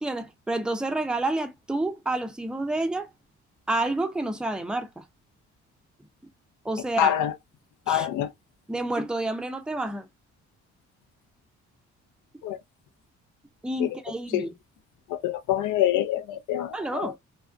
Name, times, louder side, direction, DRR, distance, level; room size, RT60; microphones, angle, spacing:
voice 1, 0.0-3.1 3.7-5.0 6.6-7.2 7.9-8.1 8.7-10.1 13.6-14.5 16.7-17.2, right 2 dB, 5° right, 0.4 m, -29 dB
voice 2, 7.0-7.3 7.9-8.3 12.4-12.6 13.8-13.9 14.3-14.4 15.1-17.1, left 12 dB, 80° left, 0.5 m, -25 dB
2.4 x 2.1 x 2.4 m
cardioid pair, 90°, 30 cm